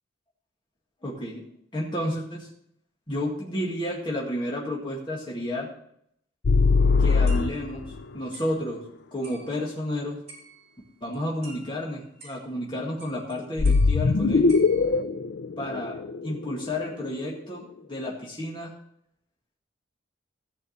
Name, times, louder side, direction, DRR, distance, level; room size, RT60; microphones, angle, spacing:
voice 1, 1.0-1.4 1.7-2.5 3.1-5.7 7.0-8.8 9.1-10.2 11.0-14.5 15.6-16.0 16.2-18.7, left 1 dB, 25° left, -4 dB, 2.0 m, -31 dB
sound 1, 6.4-8.0 13.6-16.7, left 4 dB, 65° left, 0.5 m, -21 dB
sound 2, 7.3-8.0 8.3-8.6 9.2-9.9 10.3-10.9 11.1-12.6 13.0-13.3 13.6-15.0, right 3 dB, 35° right, 5.0 m, -49 dB
14.5 x 5.3 x 6.6 m, 0.71 s
head